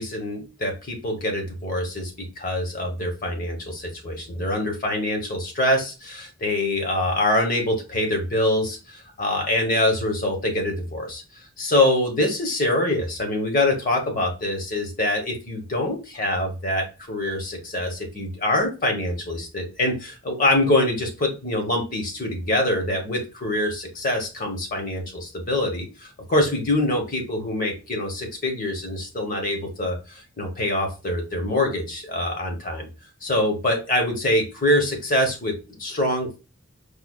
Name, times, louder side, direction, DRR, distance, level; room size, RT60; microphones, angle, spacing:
voice 1, 0.0-11.2 11.6-32.9 33.2-36.4, left 1 dB, 40° left, 3 dB, 0.9 m, -24 dB
4.7 x 2.3 x 2.3 m, 0.30 s
head